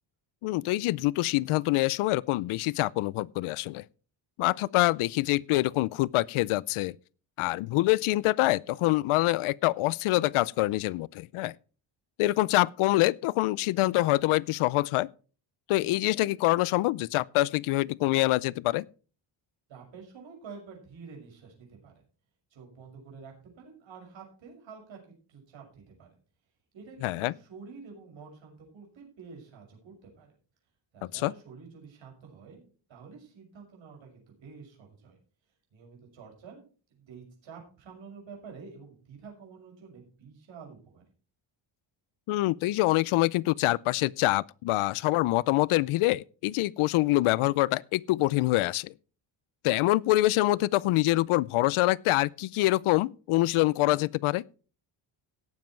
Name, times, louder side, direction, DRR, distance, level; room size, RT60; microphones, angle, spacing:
voice 1, 0.4-3.8 4.4-6.9 7.4-11.5 12.2-15.1 15.7-18.9 27.0-27.3 31.1-31.3 42.3-48.9 49.6-54.4, left 18 dB, 90° left, 0.6 m, -25 dB
voice 2, 19.7-22.0 22.5-26.1 26.7-30.3 30.9-35.2 35.7-36.6 36.9-41.0, right 5 dB, 65° right, 6.5 m, -49 dB
17.5 x 7.4 x 4.5 m
cardioid pair, 140°, 49 cm